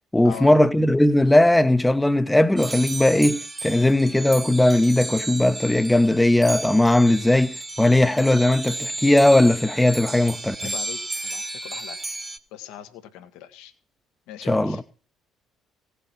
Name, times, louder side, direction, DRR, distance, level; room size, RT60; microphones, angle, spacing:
voice 1, 0.1-10.7 14.5-14.8, left 1 dB, 10° left, 1.0 m, -18 dB
sound 1, 2.6-12.4, right 2 dB, 20° right, 1.2 m, -33 dB
voice 2, 10.6-12.2 12.5-13.7 14.3-14.8, left 11 dB, 65° left, 1.3 m, -40 dB
17.5 x 6.8 x 4.3 m
figure-of-eight pair, 50°, 0 cm